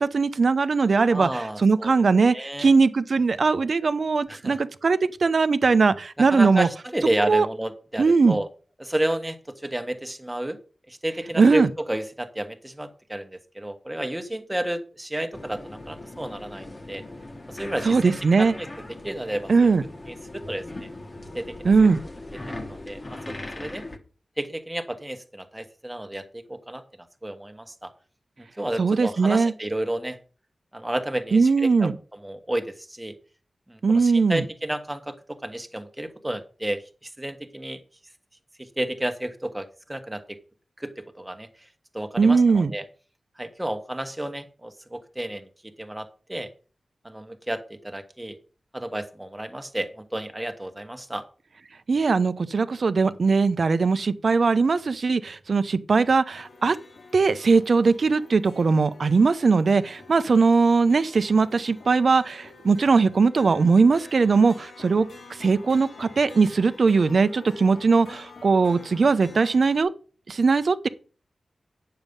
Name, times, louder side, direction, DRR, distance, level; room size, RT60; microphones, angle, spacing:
voice 1, 0.0-6.7 7.2-7.5 8.0-8.4 11.4-11.7 17.8-18.5 19.5-19.8 21.6-22.0 28.8-29.5 31.3-32.0 33.8-34.4 42.2-42.7 51.9-56.8 57.1-65.1 65.4-69.9 70.3-70.9, right 4 dB, 60° right, 0.7 m, -20 dB
voice 2, 1.1-1.9 2.3-2.7 4.3-4.6 6.2-8.5 8.8-10.6 10.9-17.0 17.5-18.7 19.0-19.5 20.3-20.9 21.3-21.9 22.6-23.8 24.4-26.8 27.2-27.9 28.4-30.2 30.7-31.9 32.2-33.1 33.7-37.8 38.6-40.4 40.8-41.5 41.9-42.8 43.4-46.5 47.0-48.4 48.7-51.2, right 1 dB, 10° right, 1.3 m, -31 dB
sound 1, 15.3-24.0, left 2 dB, 35° left, 1.3 m, -39 dB
sound 2, 56.3-69.8, left 3 dB, 75° left, 2.0 m, -47 dB
9.1 x 6.8 x 5.3 m
wide cardioid pair, 105°, 0 cm